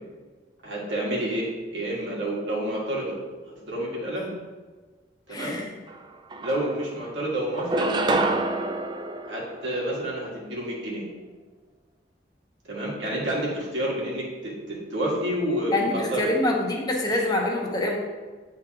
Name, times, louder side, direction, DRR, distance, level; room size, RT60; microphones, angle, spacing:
voice 1, 0.6-3.2 3.5-4.3 5.3-5.6 6.4-7.9 9.3-11.1 12.7-16.3 17.1-17.2, right 1 dB, 80° right, -4 dB, 1.7 m, -29 dB
voice 2, 5.3-5.7 15.7-18.0, left 2 dB, 20° left, -1 dB, 0.9 m, -25 dB
sound 1, 5.9-6.0 6.3-7.1 7.5-10.1, right 2 dB, 25° right, 0.3 m, -27 dB
8.6 x 3.8 x 2.9 m, 1.4 s
head